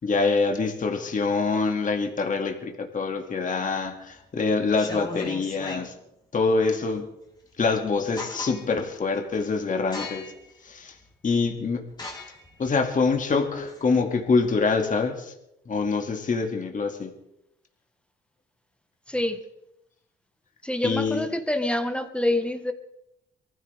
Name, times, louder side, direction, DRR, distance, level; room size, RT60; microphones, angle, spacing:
voice 1, 0.0-5.9 6.3-7.1 7.6-10.3 10.6-10.9 11.2-11.8 12.6-15.3 15.7-17.1 20.8-21.3, left 4 dB, 40° left, 4 dB, 2.4 m, -25 dB
sound 1, 3.7-4.1 4.6-5.9 7.5-7.6 7.9-8.8 9.3-9.5 9.9-10.5 11.0-11.1 11.9-14.2, left 2 dB, 20° left, 3.5 m, -38 dB
voice 2, 19.1-19.4 20.6-22.7, left 1 dB, 5° left, 6 dB, 1.5 m, -26 dB
23.0 x 15.5 x 3.6 m, 0.84 s
cardioid pair, 90°, 20 cm